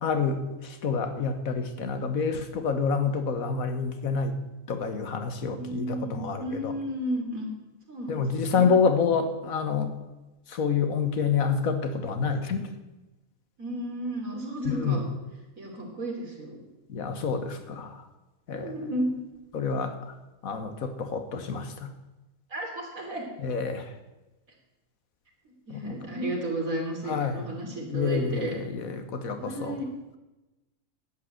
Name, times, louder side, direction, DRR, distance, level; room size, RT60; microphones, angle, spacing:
voice 1, 0.0-4.4 4.7-6.7 8.1-9.9 10.5-12.7 14.6-15.0 16.9-18.0 18.5-18.8 19.5-19.9 20.4-21.9 23.4-23.9 25.7-26.0 27.1-27.5 27.9-29.8, left 5 dB, 75° left, 8 dB, 1.6 m, -28 dB
voice 2, 5.4-7.5 7.9-8.7 13.6-15.0 15.6-16.6 18.5-19.1 22.5-23.3 25.7-28.5 29.4-29.9, right 1 dB, 70° right, 0 dB, 3.4 m, -33 dB
11.5 x 8.7 x 7.9 m, 1.1 s
omnidirectional pair, 1.5 m